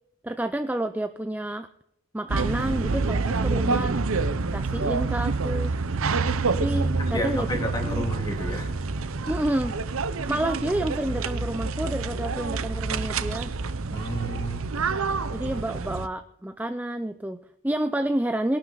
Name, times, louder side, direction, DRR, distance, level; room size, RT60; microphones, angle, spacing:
voice 1, 0.2-1.7 2.1-4.0 4.5-5.7 6.6-7.5 7.8-8.0 9.3-9.8 10.3-13.5 15.3-18.6, right 1 dB, 5° right, 8 dB, 0.4 m, -29 dB
sound 1, 2.3-16.1, right 3 dB, 65° right, 0.8 m, -27 dB
voice 2, 6.7-8.7 13.9-14.7, equal, 15° left, 1 dB, 3.2 m, -31 dB
22.0 x 12.0 x 4.0 m, 0.76 s
head